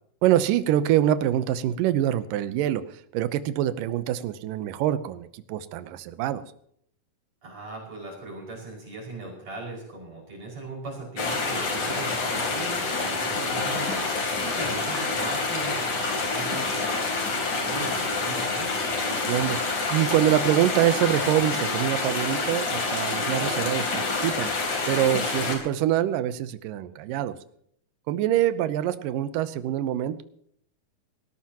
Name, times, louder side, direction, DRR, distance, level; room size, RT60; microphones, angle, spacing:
voice 1, 0.2-6.4 19.1-19.6 19.9-24.5 24.9-27.4 28.1-30.2, right 12 dB, 80° right, 12 dB, 2.4 m, -25 dB
voice 2, 7.4-18.8, right 2 dB, 50° right, -2 dB, 7.0 m, -38 dB
sound 1, 11.2-25.6, left 3 dB, 60° left, 4.8 m, -27 dB
19.5 x 18.0 x 3.0 m, 0.67 s
omnidirectional pair, 4.0 m